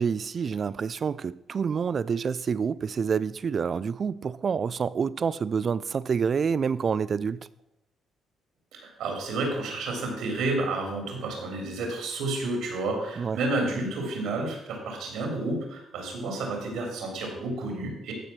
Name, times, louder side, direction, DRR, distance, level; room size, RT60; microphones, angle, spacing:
voice 1, 0.0-7.4 13.2-13.4, right 6 dB, 45° right, 0.4 m, -27 dB
voice 2, 8.7-18.1, right 2 dB, 85° right, 3.3 m, -30 dB
14.5 x 5.1 x 6.0 m
cardioid pair, 90°, 0 cm